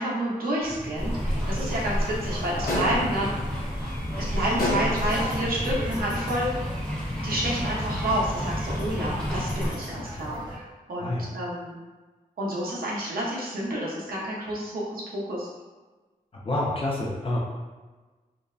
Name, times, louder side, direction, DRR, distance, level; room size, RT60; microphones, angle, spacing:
voice 1, 0.0-3.4 4.2-6.5 7.2-11.8 12.4-15.5, right 1 dB, 75° right, -5 dB, 0.6 m, -29 dB
sound 1, 0.6-10.6, equal, 30° right, 0.5 m, -37 dB
sound 2, 1.0-9.7, equal, 5° left, 0.8 m, -30 dB
sound 3, 2.7-3.2 4.6-5.2, left 1 dB, 80° left, 0.6 m, -27 dB
voice 2, 16.4-17.4, left 1 dB, 40° left, -3 dB, 0.5 m, -27 dB
2.5 x 2.1 x 2.3 m, 1.3 s
wide cardioid pair, 150°, 15 cm